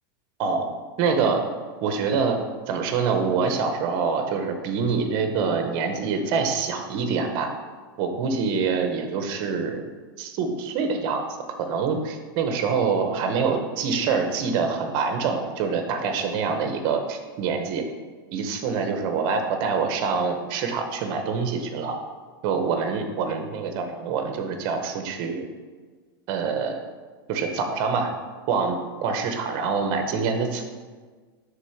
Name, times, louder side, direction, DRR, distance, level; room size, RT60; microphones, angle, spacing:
voice 1, 0.4-0.7 1.0-1.4 1.8-2.4 2.7-7.5 8.0-9.8 10.2-11.3 11.6-17.8 18.3-22.0 22.4-25.5 26.3-26.8 27.3-28.1 28.5-30.6, right 5 dB, 35° right, 6 dB, 0.8 m, -25 dB
5.9 x 3.9 x 5.8 m, 1.5 s
supercardioid pair, 170°, 12 cm